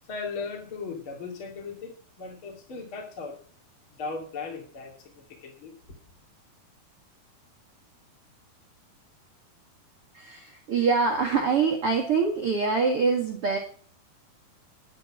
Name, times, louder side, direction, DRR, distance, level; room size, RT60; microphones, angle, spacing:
voice 1, 0.1-3.4 4.0-5.8, left 4 dB, 35° left, 3.0 m, -37 dB
voice 2, 10.1-13.6, right 5 dB, 45° right, 2.3 m, -24 dB
11.5 x 10.5 x 6.2 m
omnidirectional pair, 4.7 m